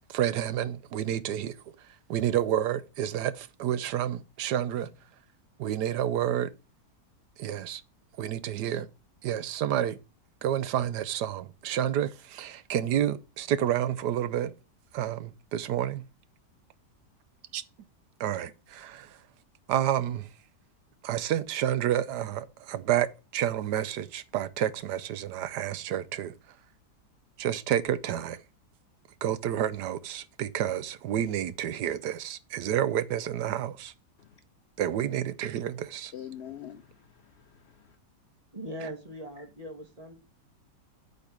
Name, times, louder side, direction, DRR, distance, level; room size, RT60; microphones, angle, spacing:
voice 1, 0.1-4.9 5.6-6.5 7.4-7.8 8.2-8.9 9.2-10.0 10.4-14.5 14.9-16.0 17.5-17.6 18.2-19.2 19.7-20.3 21.0-23.1 23.3-26.3 27.4-28.4 29.2-33.9 34.8-36.1 38.8-38.9, right 11 dB, 80° right, 1.2 m, -29 dB
voice 2, 36.1-38.0, left 10 dB, 80° left, 0.5 m, -45 dB
voice 3, 38.5-40.1, equal, 20° right, 1.8 m, -40 dB
8.4 x 4.1 x 5.9 m
omnidirectional pair, 1.8 m